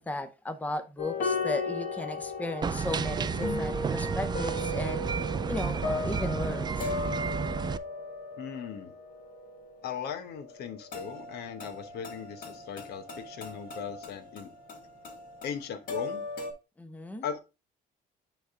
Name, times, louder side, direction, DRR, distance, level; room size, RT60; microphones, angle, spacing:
voice 1, 0.0-5.1 5.5-6.9 16.8-17.2, left 2 dB, 10° left, 0.7 m, -35 dB
sound 1, 1.0-16.5, left 3 dB, 55° left, 1.9 m, -37 dB
sound 2, 2.6-7.8, right 6 dB, 25° right, 0.4 m, -32 dB
voice 2, 8.4-8.9 9.8-14.5 15.4-16.2 17.2-17.4, left 7 dB, 70° left, 1.1 m, -38 dB
9.2 x 3.5 x 3.6 m
cardioid pair, 110°, 17 cm